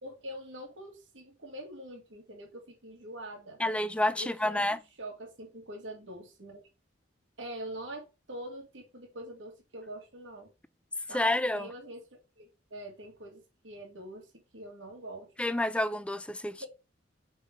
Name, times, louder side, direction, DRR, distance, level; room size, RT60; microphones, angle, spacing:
voice 1, 0.0-3.6 4.1-4.6 5.0-6.6 7.4-10.5 11.1-15.3 16.6-16.7, right 1 dB, 80° right, 1.8 m, -44 dB
voice 2, 3.6-4.8 11.1-11.7 15.4-16.6, left 1 dB, 5° left, 0.4 m, -29 dB
5.0 x 4.0 x 4.8 m
head